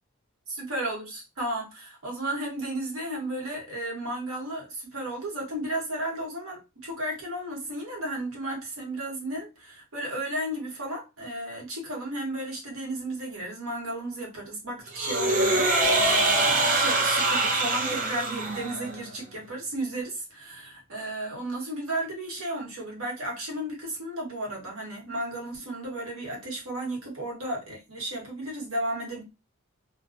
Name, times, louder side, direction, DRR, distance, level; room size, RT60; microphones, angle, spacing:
voice 1, 0.5-29.2, right 1 dB, 70° right, 1.1 m, -34 dB
sound 1, 14.9-19.0, right 2 dB, 35° right, 0.5 m, -24 dB
2.3 x 2.2 x 2.4 m
head